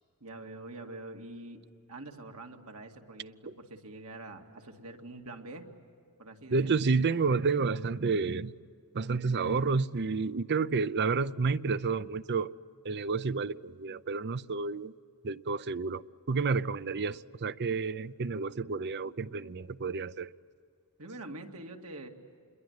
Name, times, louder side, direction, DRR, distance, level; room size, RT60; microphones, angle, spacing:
voice 1, 0.2-1.6 1.9-5.7 6.2-6.7 21.0-22.1, right 2 dB, 75° right, 2.4 m, -45 dB
voice 2, 6.5-8.5 8.9-12.5 12.8-14.9 15.2-20.3, right 4 dB, 50° right, 0.6 m, -30 dB
28.0 x 22.0 x 9.6 m
head